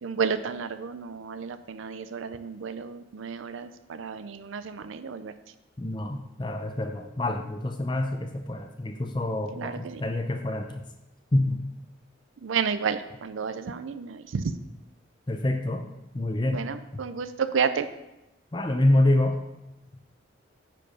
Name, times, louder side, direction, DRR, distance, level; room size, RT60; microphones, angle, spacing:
voice 1, 0.0-5.3 9.5-10.0 12.4-14.5 16.5-17.9, right 6 dB, 85° right, 11 dB, 0.5 m, -31 dB
voice 2, 5.8-10.8 11.3-11.6 15.3-15.8 16.1-16.6 18.5-19.4, left 1 dB, 25° left, 5 dB, 0.5 m, -26 dB
9.7 x 4.6 x 5.3 m, 0.96 s
head